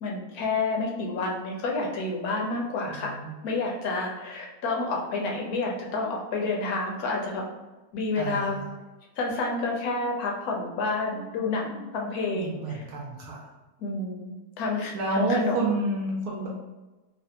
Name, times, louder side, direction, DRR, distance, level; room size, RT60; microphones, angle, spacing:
voice 1, 0.0-3.1 3.4-7.4 7.9-8.6 9.2-12.8 13.8-15.8, left 3 dB, 70° left, 0 dB, 1.1 m, -29 dB
voice 2, 3.0-3.3 8.2-8.7 12.4-13.4 14.9-16.5, right 2 dB, 75° right, -3 dB, 1.0 m, -29 dB
3.3 x 2.1 x 2.8 m, 1.1 s
omnidirectional pair, 1.7 m